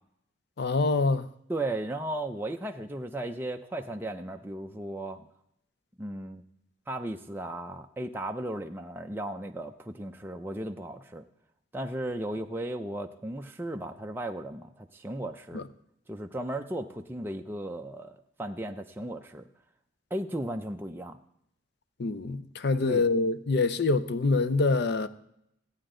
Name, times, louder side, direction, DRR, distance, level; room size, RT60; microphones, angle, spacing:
voice 1, 0.6-1.3 15.5-15.6 22.0-25.1, left 3 dB, 55° left, 0.6 m, -25 dB
voice 2, 1.5-5.3 6.0-6.4 6.9-11.3 11.7-15.6 16.1-19.5 20.1-21.2 22.8-23.1, right 1 dB, 10° right, 0.4 m, -35 dB
15.0 x 8.8 x 3.8 m
head